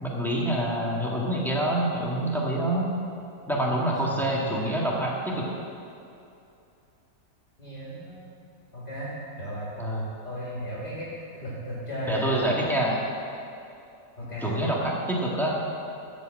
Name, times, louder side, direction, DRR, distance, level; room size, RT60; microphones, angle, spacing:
voice 1, 0.0-2.9 3.5-5.5 9.8-10.1 12.1-13.0 14.4-15.6, right 1 dB, ahead, -4 dB, 1.5 m, -26 dB
voice 2, 3.5-4.4 7.6-8.3 8.7-9.1 9.4-9.7 10.2-12.4 14.2-14.6, equal, 30° left, -7 dB, 2.4 m, -35 dB
13.5 x 5.1 x 7.5 m, 2.7 s
omnidirectional pair, 1.7 m